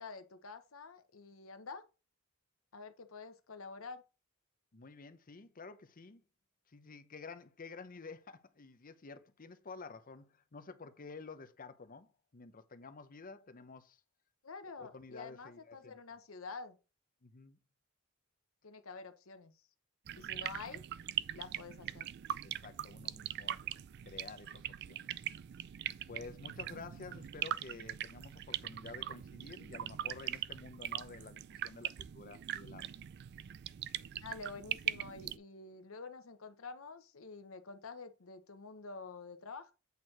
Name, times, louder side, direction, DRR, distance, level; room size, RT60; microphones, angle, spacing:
voice 1, 0.0-1.8 2.7-4.0 14.4-16.8 18.6-19.5 20.2-20.8 21.3-22.1 34.1-39.7, left 4 dB, 75° left, 1.0 m, -48 dB
voice 2, 4.7-6.2 6.7-14.0 14.8-16.0 17.2-17.6 20.1-20.6 22.4-23.7 24.0-25.1 26.1-32.9, left 4 dB, 45° left, 0.8 m, -51 dB
sound 1, 20.1-35.4, right 11 dB, 55° right, 0.3 m, -41 dB
8.3 x 4.5 x 4.7 m
head